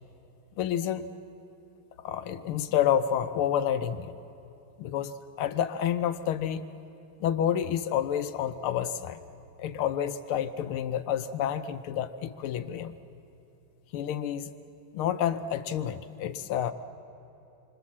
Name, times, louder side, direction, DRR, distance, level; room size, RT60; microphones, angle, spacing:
voice 1, 0.6-1.1 2.0-4.1 4.8-6.7 7.2-9.2 9.6-12.9 13.9-14.5 14.9-16.7, left 9 dB, 80° left, 11 dB, 1.6 m, -29 dB
28.5 x 25.0 x 7.3 m, 3.0 s
omnidirectional pair, 2.4 m